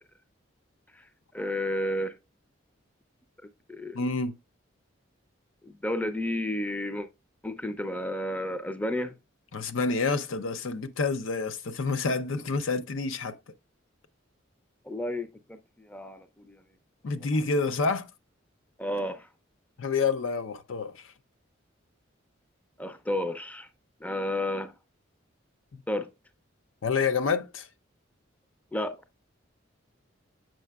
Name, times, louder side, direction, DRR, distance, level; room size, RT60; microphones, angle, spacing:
voice 1, 1.3-2.2 3.7-4.0 5.6-7.1 7.4-9.1 14.9-16.6 18.8-19.3 22.8-23.7 24.0-24.7 25.9-26.1 28.7-29.0, left 1 dB, 10° left, 0.5 m, -32 dB
voice 2, 3.9-4.4 9.5-13.3 17.0-18.1 19.8-21.0 25.7-25.8 26.8-27.7, left 4 dB, 80° left, 0.6 m, -28 dB
7.5 x 5.7 x 2.3 m
head